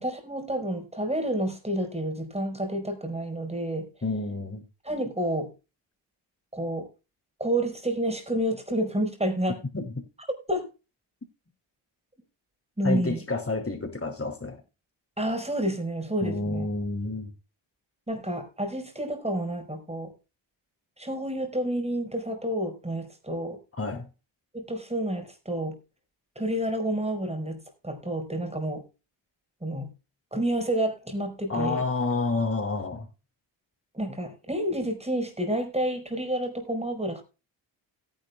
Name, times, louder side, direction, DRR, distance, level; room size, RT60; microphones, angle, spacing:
voice 1, 0.0-3.9 4.8-5.5 6.5-6.9 7.4-9.6 10.5-10.6 12.8-13.2 15.2-16.7 18.1-20.1 21.0-23.6 24.5-25.8 26.3-28.8 29.6-29.9 30.3-31.8 33.9-37.2, right 1 dB, 15° right, 5.0 m, -29 dB
voice 2, 4.0-4.6 9.7-9.9 12.8-14.6 16.2-17.3 23.7-24.1 31.5-33.1, left 3 dB, 25° left, 5.9 m, -29 dB
17.0 x 10.5 x 2.3 m
supercardioid pair, 50°, 49 cm